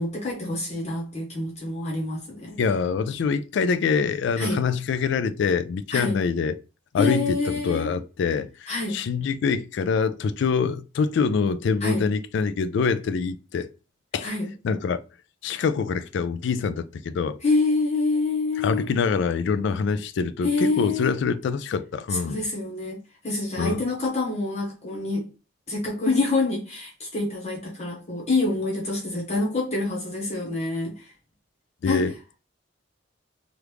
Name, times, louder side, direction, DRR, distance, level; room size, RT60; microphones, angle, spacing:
voice 1, 0.0-2.6 4.4-4.6 5.9-6.2 7.0-7.9 8.7-9.0 11.8-12.1 14.2-14.5 17.4-18.9 20.4-21.1 22.1-23.0 23.2-25.3 25.7-31.1 31.8-32.1, left 3 dB, 35° left, 1.0 m, -26 dB
voice 2, 2.6-6.6 6.9-13.7 14.1-14.3 14.6-15.0 15.4-17.4 18.6-22.4 23.6-23.8 31.8-32.1, left 5 dB, 65° left, 0.3 m, -25 dB
3.0 x 2.4 x 3.3 m
head